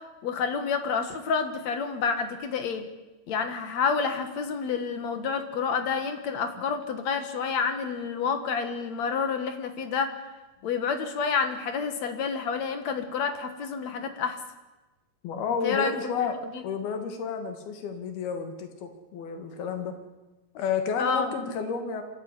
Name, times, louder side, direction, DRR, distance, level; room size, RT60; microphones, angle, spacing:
voice 1, 0.2-2.8 3.3-10.1 10.6-14.4 15.6-15.9 16.2-16.3 21.0-21.3, left 5 dB, 55° left, 8 dB, 2.6 m, -29 dB
voice 2, 15.2-19.9 20.6-22.0, left 5 dB, 75° left, 6 dB, 3.8 m, -31 dB
26.0 x 13.5 x 9.9 m, 1.1 s
omnidirectional pair, 4.4 m